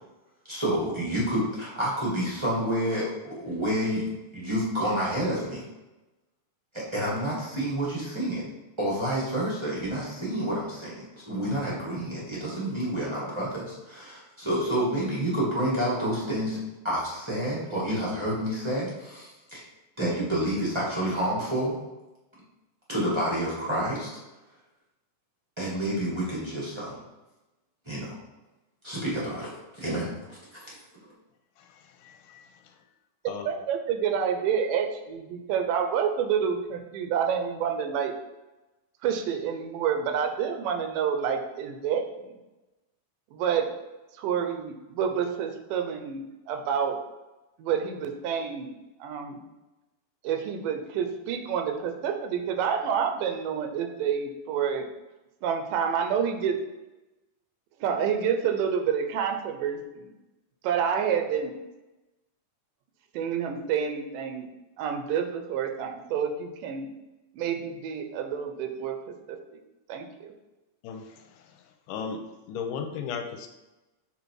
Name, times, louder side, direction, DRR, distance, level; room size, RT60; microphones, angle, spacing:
voice 1, 0.5-4.1 4.3-5.6 6.7-8.4 8.8-16.6 16.8-19.6 20.0-21.8 22.9-24.1 25.6-27.0 27.8-28.2 28.8-30.1 30.6-30.7, right 1 dB, 20° right, -6 dB, 0.7 m, -29 dB
voice 2, 32.0-32.5 33.3-33.5 70.8-71.1 71.9-72.2 72.5-73.5, left 6 dB, 90° left, 5 dB, 2.2 m, -35 dB
voice 3, 33.4-38.1 39.0-42.0 43.3-43.7 44.2-47.0 47.6-49.5 50.2-54.9 55.4-56.6 57.8-60.1 60.6-61.6 63.1-64.5 64.8-66.9 67.3-69.0 69.3-69.4 69.9-70.3, right 7 dB, 85° right, 5 dB, 2.4 m, -28 dB
6.9 x 3.7 x 4.7 m, 1.0 s
omnidirectional pair, 3.8 m